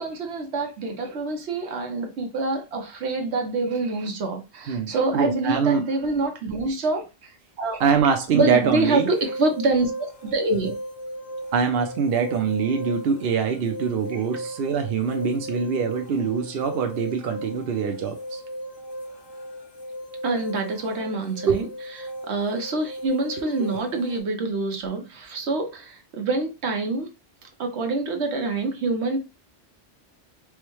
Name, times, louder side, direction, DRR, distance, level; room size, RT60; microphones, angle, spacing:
voice 1, 0.0-7.8 8.3-10.7 20.2-21.7 22.0-27.1 27.4-29.2, right 3 dB, 85° right, 1.1 m, -26 dB
voice 2, 4.7-5.8 7.8-9.1 11.5-18.4 21.5-21.6, right 6 dB, 70° right, 0.8 m, -23 dB
sound 1, 8.6-24.2, equal, 30° left, 0.7 m, -37 dB
4.7 x 2.2 x 3.0 m
omnidirectional pair, 1.1 m